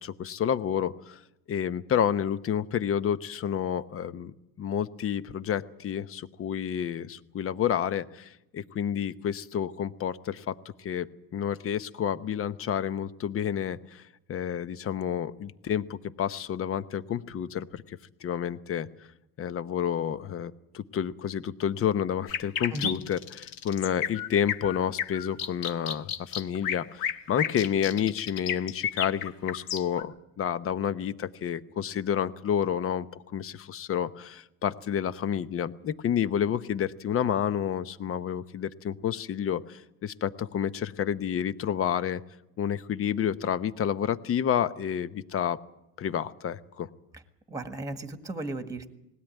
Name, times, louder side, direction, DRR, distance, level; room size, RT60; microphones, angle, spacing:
voice 1, 0.0-1.2 1.5-14.0 14.3-18.9 19.4-42.2 42.6-45.6 46.0-46.9, left 9 dB, 30° left, 14 dB, 0.9 m, -30 dB
sound 1, 22.3-30.0, left 9 dB, 50° left, 1.5 m, -32 dB
voice 2, 47.5-48.9, right 2 dB, 10° right, 7 dB, 1.7 m, -35 dB
21.0 x 17.0 x 9.2 m, 0.89 s
supercardioid pair, 125°, 45 cm